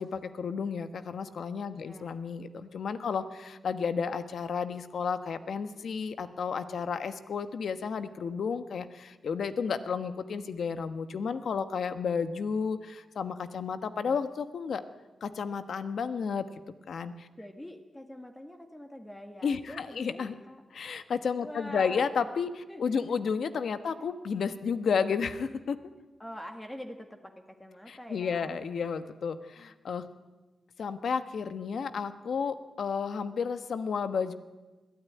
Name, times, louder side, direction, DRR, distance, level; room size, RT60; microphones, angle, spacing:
voice 1, 0.0-14.8 15.2-16.5 16.9-17.3 19.4-20.3 20.7-25.8 27.9-30.0 30.8-34.3, left 6 dB, 70° left, 10 dB, 1.2 m, -32 dB
voice 2, 1.7-2.2 3.0-3.6 17.4-20.6 21.4-22.1 22.7-23.2 23.9-24.0 26.2-28.6, equal, 10° left, 4 dB, 1.7 m, -45 dB
22.0 x 14.0 x 9.6 m, 1.2 s
wide cardioid pair, 110°, 0 cm